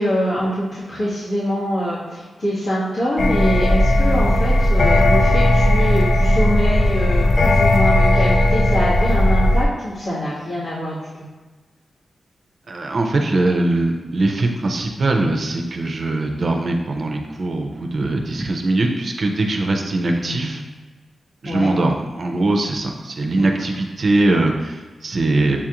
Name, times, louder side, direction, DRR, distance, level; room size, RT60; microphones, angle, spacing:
voice 1, 0.0-11.1 20.2-20.7 21.4-21.7 23.3-23.5, equal, 75° left, -13 dB, 1.4 m, -24 dB
sound 1, 3.2-9.7, left 1 dB, 45° left, 0.3 m, -16 dB
voice 2, 12.7-20.6 21.4-25.6, right 2 dB, 50° right, 2 dB, 0.5 m, -21 dB
7.0 x 2.4 x 2.9 m, 1.3 s
wide cardioid pair, 130°, 0 cm